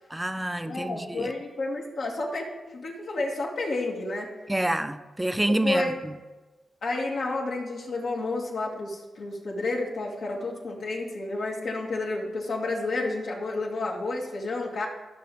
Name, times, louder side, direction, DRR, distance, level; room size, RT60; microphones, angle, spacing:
voice 1, 0.1-1.3 4.5-5.8, right 1 dB, 10° right, 9 dB, 0.7 m, -27 dB
voice 2, 0.6-4.3 5.6-5.9 6.8-14.9, left 2 dB, 70° left, -3 dB, 2.1 m, -31 dB
14.0 x 6.0 x 3.5 m, 1.2 s
cardioid pair, 65°, 0 cm